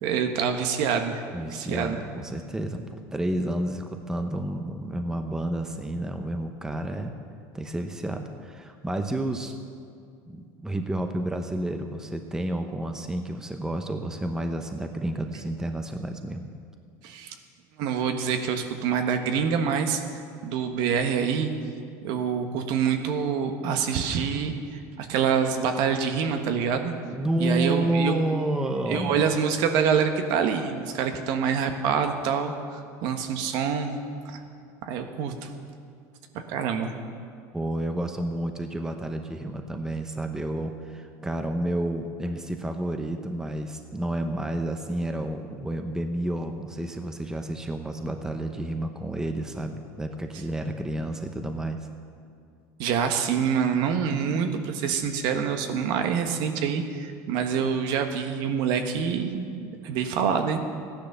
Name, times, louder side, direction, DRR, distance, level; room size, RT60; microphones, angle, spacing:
voice 1, 0.0-1.2 1.5-2.0 17.0-17.3 17.8-20.0 20.4-21.5 22.0-26.9 27.4-28.1 28.9-33.9 34.2-34.4 34.8-35.5 36.5-36.9 52.8-59.5 59.8-60.6, right 7 dB, 60° right, 6 dB, 1.4 m, -26 dB
voice 2, 1.3-7.1 7.5-9.5 10.3-16.5 27.1-29.3 37.5-51.8, right 1 dB, 5° right, 6 dB, 0.8 m, -30 dB
14.5 x 10.5 x 6.8 m, 2.3 s
cardioid pair, 140°, 8 cm